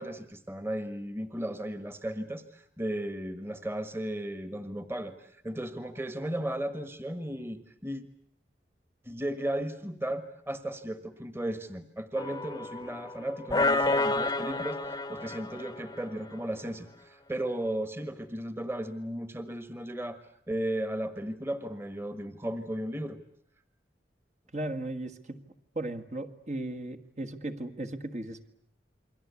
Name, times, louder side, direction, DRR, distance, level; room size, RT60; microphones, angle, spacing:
voice 1, 0.0-8.0 9.0-23.2, right 1 dB, 15° right, 10 dB, 1.5 m, -35 dB
sound 1, 12.2-13.1 13.5-16.3, left 2 dB, 20° left, 1.0 m, -29 dB
voice 2, 24.5-25.4 25.7-28.5, right 2 dB, 40° right, 6 dB, 1.6 m, -36 dB
29.0 x 23.0 x 8.4 m, 0.69 s
head